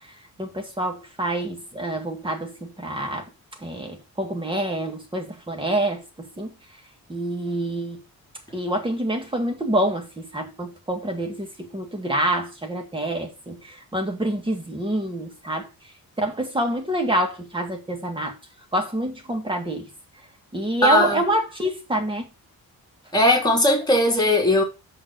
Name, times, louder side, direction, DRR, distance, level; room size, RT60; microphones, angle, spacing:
voice 1, 0.4-3.3 3.6-6.5 7.1-8.0 8.5-15.7 16.2-18.4 18.7-19.9 20.5-22.3, right 1 dB, 15° right, 1.9 m, -27 dB
voice 2, 20.8-21.2 23.1-24.6, left 1 dB, 10° left, 3.2 m, -18 dB
6.7 x 5.5 x 6.4 m
wide cardioid pair, 165°, 36 cm